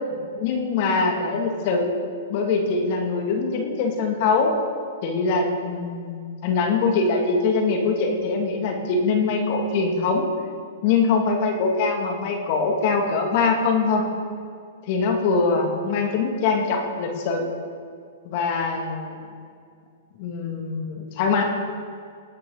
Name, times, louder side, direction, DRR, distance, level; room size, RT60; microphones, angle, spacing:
voice 1, 0.4-1.9 2.3-4.5 5.0-10.3 10.8-14.1 14.9-17.5 18.2-19.2 20.2-21.4, left 4 dB, 50° left, 2 dB, 2.1 m, -23 dB
19.0 x 8.7 x 3.9 m, 2.2 s
hypercardioid pair, 120°, 0 cm